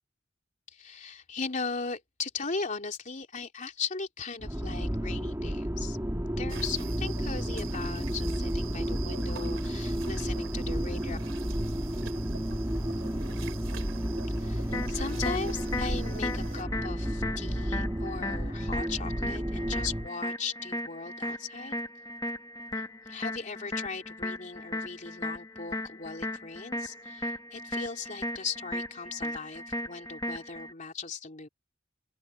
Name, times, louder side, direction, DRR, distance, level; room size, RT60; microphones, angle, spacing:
voice 1, 0.7-6.0 6.3-11.2 14.4-21.8 23.0-31.5, left 4 dB, 40° left, 3.2 m, -38 dB
sound 1, 4.4-20.1, equal, 15° right, 1.9 m, -32 dB
sound 2, 6.5-16.6, right 3 dB, 70° right, 3.1 m, -43 dB
sound 3, 14.7-30.7, left 1 dB, 20° left, 1.8 m, -37 dB
open air
head